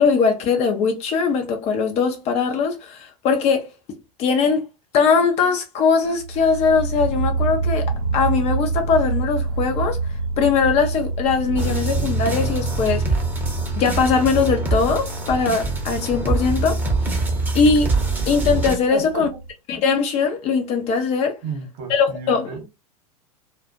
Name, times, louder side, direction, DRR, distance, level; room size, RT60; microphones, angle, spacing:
voice 1, 0.0-3.7 4.2-4.7 4.9-10.0 10.4-13.0 13.8-16.8 17.5-17.9 18.3-19.3 19.7-21.4 21.9-22.4, left 5 dB, 30° left, 0.5 m, -20 dB
sound 1, 6.0-19.5, right 3 dB, 80° right, 0.6 m, -28 dB
sound 2, 11.6-18.8, right 2 dB, 10° right, 0.7 m, -24 dB
voice 2, 18.9-19.4 21.4-22.7, right 4 dB, 45° right, 0.9 m, -32 dB
2.4 x 2.2 x 2.4 m
figure-of-eight pair, 90°, 20 cm